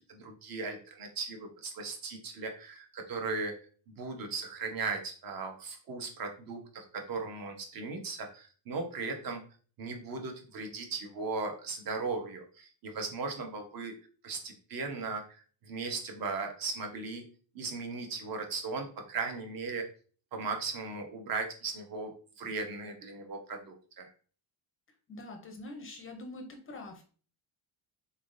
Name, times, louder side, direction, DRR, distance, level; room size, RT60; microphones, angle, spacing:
voice 1, 0.1-3.5 3.9-9.4 9.8-13.9 14.2-17.2 17.5-19.8 20.3-24.1, right 4 dB, 45° right, 4 dB, 0.9 m, -37 dB
voice 2, 25.1-27.0, left 2 dB, 30° left, 4 dB, 0.5 m, -44 dB
3.8 x 3.5 x 2.5 m, 0.41 s
cardioid pair, 165°, 47 cm